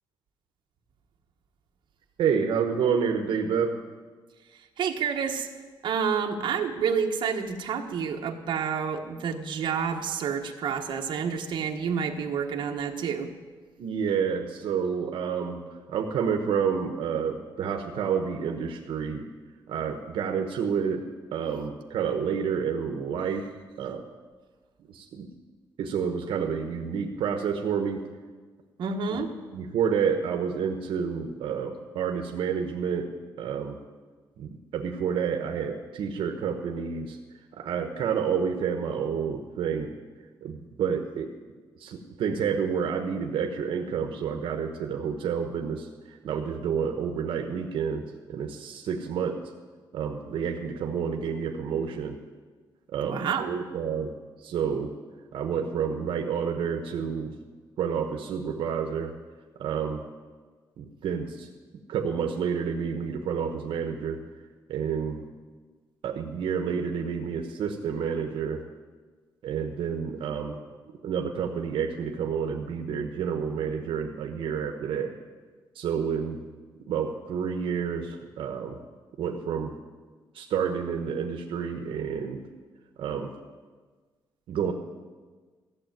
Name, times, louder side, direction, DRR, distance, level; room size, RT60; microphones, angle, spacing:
voice 1, 2.2-3.7 13.8-15.6 15.9-19.3 19.7-21.0 21.3-23.4 23.8-24.0 24.9-25.3 25.8-28.0 29.1-29.2 29.5-33.1 33.4-33.8 34.4-37.2 37.5-39.9 40.4-41.3 41.8-49.4 49.9-52.2 52.9-54.1 54.4-54.9 55.3-57.3 57.8-59.1 59.6-60.0 60.8-61.5 61.9-64.2 64.7-65.2 66.0-68.6 69.4-70.6 71.0-75.1 75.7-76.4 76.9-78.8 79.2-79.7 80.3-82.4 83.0-83.3 84.5-84.7, right 7 dB, 75° right, 3 dB, 1.2 m, -29 dB
voice 2, 4.8-5.5 5.8-13.3 28.8-29.3 53.0-53.5, right 6 dB, 60° right, 2 dB, 1.3 m, -29 dB
15.0 x 7.5 x 9.2 m, 1.4 s
cardioid pair, 165°, 9 cm